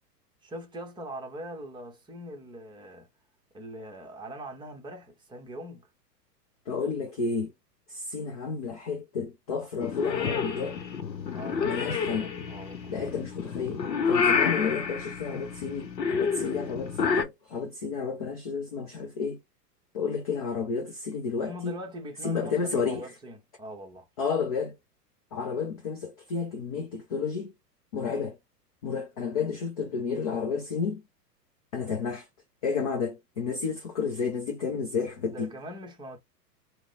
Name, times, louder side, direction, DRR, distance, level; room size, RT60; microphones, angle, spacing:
voice 1, 0.4-3.1 3.5-5.9 11.3-12.9 21.3-24.1 35.3-36.2, equal, 10° right, 0.8 m, -42 dB
voice 2, 6.7-7.5 7.9-10.8 11.6-12.3 12.9-19.4 19.9-21.8 22.2-23.0 24.2-24.8 25.3-27.5 27.9-28.4 28.8-31.0 31.7-32.3 32.6-35.5, left 5 dB, 25° left, 0.3 m, -31 dB
Purr / Meow, 9.8-17.2, left 5 dB, 90° left, 0.7 m, -29 dB
2.8 x 2.1 x 4.0 m
figure-of-eight pair, 105°, 49 cm